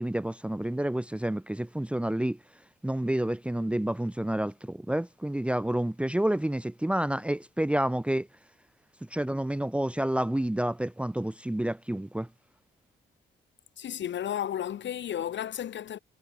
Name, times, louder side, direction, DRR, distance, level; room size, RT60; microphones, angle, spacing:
voice 1, 0.0-2.4 2.8-8.3 9.1-12.3, right 1 dB, 5° right, 0.9 m, -29 dB
voice 2, 13.8-16.0, left 10 dB, 65° left, 6.8 m, -33 dB
cardioid pair, 90°, 20 cm